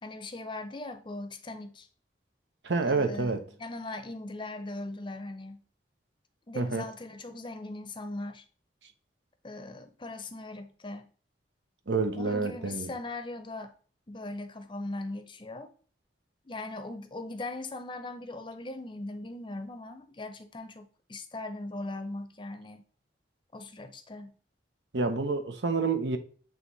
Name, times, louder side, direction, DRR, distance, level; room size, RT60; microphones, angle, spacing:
voice 1, 0.0-1.9 2.9-5.6 6.5-8.4 9.4-11.1 12.1-13.7 14.1-15.7 16.4-22.8 23.5-24.4, left 2 dB, 25° left, 0.7 m, -39 dB
voice 2, 2.6-3.4 6.5-6.9 11.9-12.9 24.9-26.2, right 4 dB, 75° right, 0.8 m, -28 dB
7.9 x 3.0 x 4.0 m
head